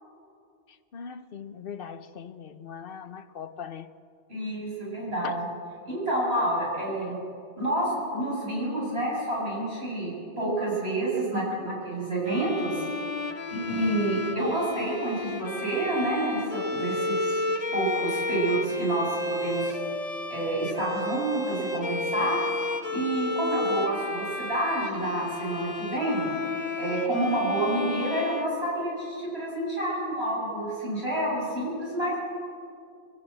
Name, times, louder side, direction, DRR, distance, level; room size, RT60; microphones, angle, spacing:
voice 1, 0.9-3.9 5.2-5.4 6.9-7.0, left 7 dB, 65° left, 12 dB, 1.0 m, -40 dB
voice 2, 4.3-5.5 5.9-7.2 7.6-12.8 13.5-17.4 17.7-19.8 20.3-22.4 22.9-26.3 26.8-32.2, right 1 dB, 85° right, -5 dB, 7.9 m, -28 dB
Bowed string instrument, 12.3-29.2, left 2 dB, 40° left, 1.1 m, -32 dB
23.0 x 15.0 x 9.0 m, 2.4 s
omnidirectional pair, 1.1 m